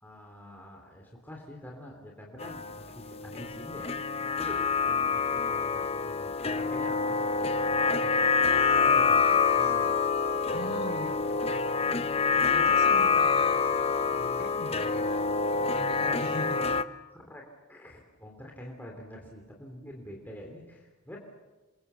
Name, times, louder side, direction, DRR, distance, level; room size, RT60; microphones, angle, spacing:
voice 1, 0.0-4.6 4.8-10.0 16.6-17.4 17.7-21.2, equal, 10° left, 0 dB, 3.2 m, -46 dB
sound 1, 2.4-16.8, left 5 dB, 25° left, 0.8 m, -26 dB
voice 2, 10.5-15.3 15.5-16.6, left 1 dB, 50° left, 2 dB, 6.9 m, -41 dB
28.0 x 23.0 x 7.0 m, 1.2 s
head